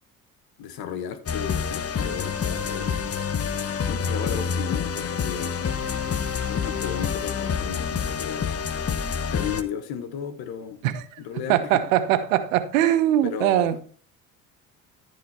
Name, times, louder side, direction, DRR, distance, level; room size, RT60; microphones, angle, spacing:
voice 1, 0.6-2.9 3.9-5.5 6.4-8.5 9.3-11.6 13.2-13.7, left 8 dB, 65° left, 1.8 m, -34 dB
sound 1, 1.3-9.6, left 6 dB, 35° left, 1.2 m, -27 dB
voice 2, 10.8-11.2 11.5-13.8, right 12 dB, 85° right, 1.0 m, -22 dB
14.0 x 5.1 x 4.5 m
hypercardioid pair, 60°, 39 cm